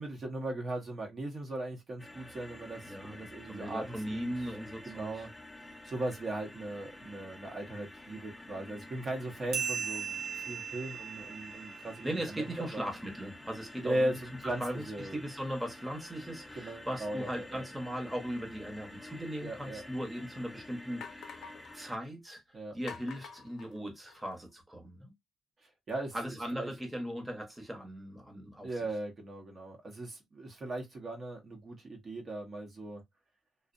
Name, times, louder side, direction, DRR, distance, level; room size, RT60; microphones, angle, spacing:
voice 1, 0.0-4.5 4.9-5.3 5.6-12.8 13.8-14.6 14.9-15.2 16.6-17.7 19.4-19.8 22.5-22.8 25.6-26.1 26.5-26.7 28.6-33.0, right 1 dB, 45° right, 0.7 m, -38 dB
sound 1, 2.0-22.0, left 1 dB, 10° left, 0.5 m, -50 dB
voice 2, 2.8-5.2 12.0-21.5 21.7-25.1 26.1-28.9, equal, 10° right, 0.8 m, -39 dB
sound 2, 9.5-12.6, right 7 dB, 80° right, 0.9 m, -38 dB
sound 3, 19.6-19.7 20.4-20.5 21.0-21.8 22.9-24.4, left 6 dB, 75° left, 0.4 m, -47 dB
2.5 x 2.0 x 2.4 m
cardioid pair, 90°, 0 cm